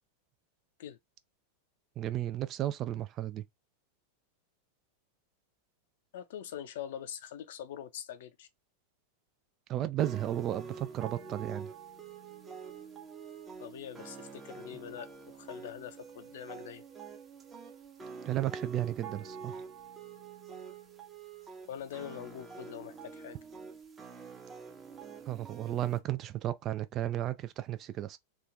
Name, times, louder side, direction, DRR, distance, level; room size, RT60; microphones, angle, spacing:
voice 1, 2.0-3.4 9.7-11.7 18.3-19.6 25.3-28.2, right 12 dB, 35° right, 0.3 m, -34 dB
voice 2, 6.1-8.5 13.6-16.8 21.7-23.4, left 10 dB, 55° left, 0.5 m, -43 dB
sound 1, 10.0-26.0, right 5 dB, 15° right, 0.8 m, -46 dB
3.0 x 2.4 x 2.4 m
figure-of-eight pair, 90°, 0 cm